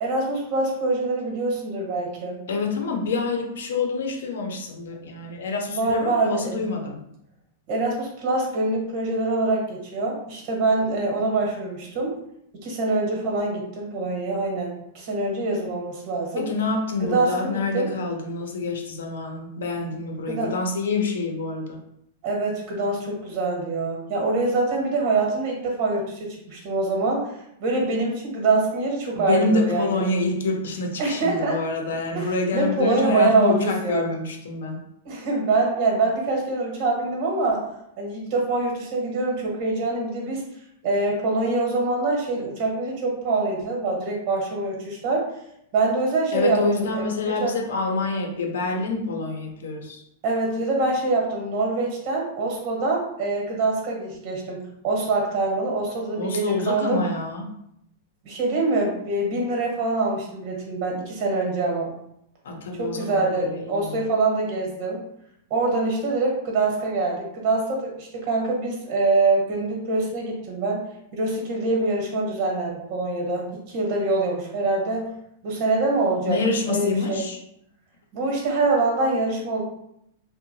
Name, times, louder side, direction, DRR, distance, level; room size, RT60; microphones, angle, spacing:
voice 1, 0.0-2.4 5.7-6.6 7.7-12.1 12.6-16.5 17.0-17.9 20.3-20.5 22.2-27.3 27.6-30.0 31.0-31.6 32.1-34.1 35.0-37.7 38.0-40.4 40.8-45.3 45.7-47.0 47.3-47.6 50.2-57.0 58.2-61.9 62.8-65.0 65.5-70.8 71.1-75.1 75.4-76.4 76.7-77.2 78.1-79.6, right 3 dB, 50° right, -1 dB, 1.0 m, -24 dB
voice 2, 2.5-7.0 16.4-21.8 29.1-34.8 46.3-50.0 56.2-57.5 62.4-64.0 76.2-77.4, left 3 dB, 80° left, 2 dB, 0.6 m, -27 dB
2.7 x 2.1 x 2.6 m, 0.76 s
hypercardioid pair, 130°, 0 cm